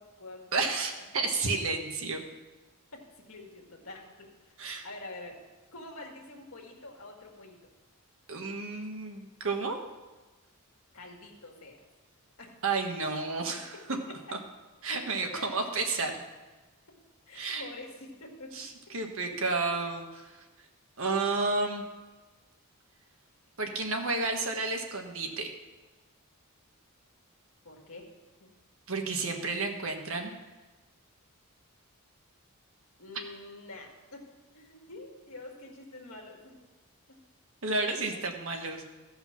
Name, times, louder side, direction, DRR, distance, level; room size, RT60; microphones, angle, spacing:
voice 1, 0.0-0.7 2.9-4.6 4.8-5.4 5.7-7.6 10.9-11.8 12.4-12.6 13.7-14.3 15.3-15.8 17.3-18.9 19.2-19.4 27.6-28.1 28.4-28.5 33.0-34.3 34.5-36.6 37.1-37.2 38.1-38.2, left 2 dB, 65° left, 0 dB, 2.0 m, -47 dB
voice 2, 0.5-2.2 4.6-4.8 8.3-9.8 12.6-13.7 14.8-16.2 17.3-17.7 18.5-18.7 18.9-20.3 21.0-21.8 23.6-25.5 28.9-30.3 37.6-38.9, right 3 dB, 65° right, 3 dB, 1.4 m, -31 dB
15.0 x 5.6 x 5.9 m, 1.2 s
head